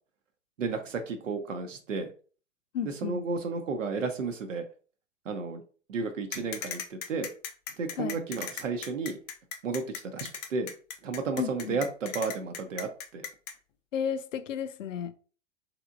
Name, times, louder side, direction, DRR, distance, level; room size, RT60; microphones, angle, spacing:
voice 1, 0.6-2.1 2.8-4.6 5.2-5.6 5.9-7.3 7.8-9.2 9.6-9.8 10.1-10.7 11.0-13.3, right 4 dB, 80° right, 0.7 m, -32 dB
voice 2, 2.7-3.2 8.0-8.2 11.4-11.8 13.9-15.1, left 8 dB, 80° left, 0.5 m, -33 dB
sound 1, 6.3-13.5, left 8 dB, 30° left, 0.4 m, -37 dB
3.3 x 2.9 x 2.5 m
figure-of-eight pair, 100°, 38 cm